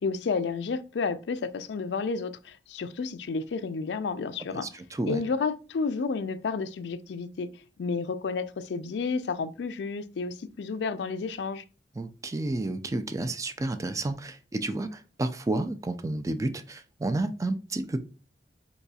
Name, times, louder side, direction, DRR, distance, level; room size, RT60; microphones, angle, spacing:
voice 1, 0.0-4.7 5.1-7.5 7.8-11.6, left 4 dB, 75° left, 0.4 m, -31 dB
voice 2, 4.6-5.2 12.0-18.0, right 2 dB, 20° right, 0.3 m, -31 dB
4.7 x 4.0 x 2.3 m
head